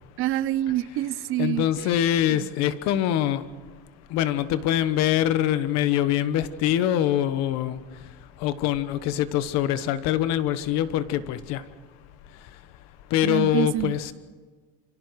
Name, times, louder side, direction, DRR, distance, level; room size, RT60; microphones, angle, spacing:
voice 1, 0.2-1.9 2.3-2.5 13.2-13.9, right 14 dB, 45° right, 17 dB, 0.6 m, -27 dB
voice 2, 1.4-3.4 4.1-7.8 8.4-11.6 13.1-14.1, left 11 dB, 60° left, 13 dB, 1.2 m, -24 dB
27.5 x 25.5 x 4.8 m, 1.5 s
cardioid pair, 175°, 30 cm